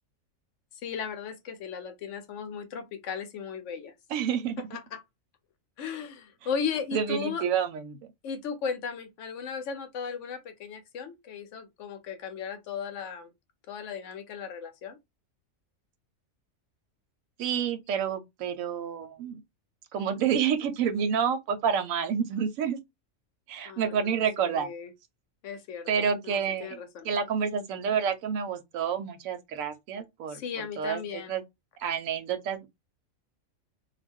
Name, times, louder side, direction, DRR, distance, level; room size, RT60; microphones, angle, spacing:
voice 1, 0.7-3.9 4.7-5.0 5.8-7.4 8.2-13.3 13.7-15.0 23.7-24.9 25.4-25.9 26.2-27.1 30.3-31.4, left 6 dB, 70° left, 0.9 m, -36 dB
voice 2, 4.1-4.6 6.9-8.0 17.4-19.4 19.9-22.8 23.5-24.7 25.9-26.8 27.0-31.4 31.8-32.7, right 7 dB, 85° right, 1.0 m, -29 dB
2.4 x 2.2 x 3.5 m
omnidirectional pair, 1.4 m